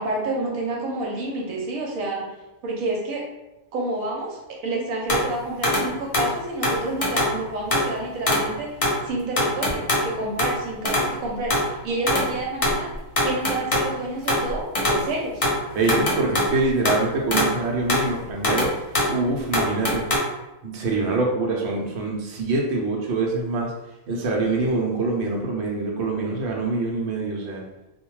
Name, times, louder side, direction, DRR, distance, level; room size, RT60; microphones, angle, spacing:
voice 1, 0.0-2.3 2.6-3.3 3.7-8.8 9.0-15.5, right 2 dB, 80° right, -1 dB, 1.0 m, -29 dB
sound 1, 5.1-5.3 5.6-5.9 6.1-6.4 6.6-7.4 7.7-7.9 8.3-8.5 8.8-9.0 9.4-10.1 10.4-10.6 10.9-11.1 11.5-11.7 12.1-12.3 12.6-13.9 14.3-15.1 15.4-17.1 17.3-17.6 17.9-18.1 18.4-19.2 19.5-20.2, left 1 dB, 55° left, 0.3 m, -22 dB
voice 2, 15.7-20.2 20.6-23.7 24.1-27.6, right 3 dB, 60° right, -1 dB, 0.8 m, -25 dB
2.3 x 2.2 x 3.0 m, 0.99 s
omnidirectional pair, 1.4 m